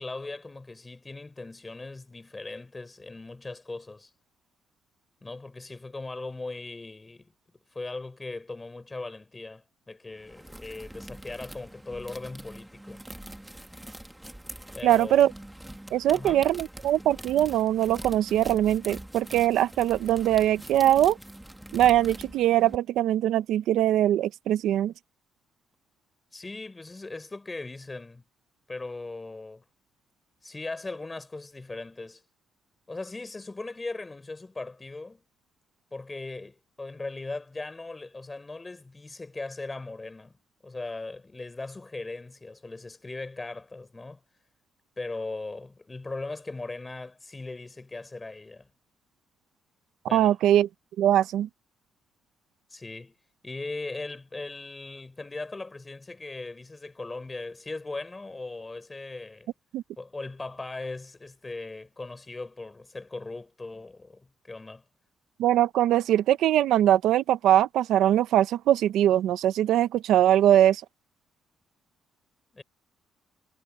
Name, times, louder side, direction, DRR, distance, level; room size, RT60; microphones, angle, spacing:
voice 1, 0.0-4.1 5.2-7.3 7.7-13.0 14.7-15.3 16.1-16.4 26.3-28.2 28.7-29.6 30.4-32.2 32.9-35.2 35.9-40.3 40.6-44.2 45.0-48.7 50.1-50.4 52.7-53.1 53.4-59.5 60.0-64.8 72.5-72.6, left 3 dB, 20° left, 4.3 m, -39 dB
sound 1, 10.1-22.8, right 1 dB, 5° right, 2.0 m, -44 dB
voice 2, 14.8-15.3 15.9-21.2 21.7-24.9 50.1-50.7 51.0-51.5 59.7-59.8 65.4-70.8, right 12 dB, 85° right, 0.8 m, -22 dB
cardioid pair, 90°, 0 cm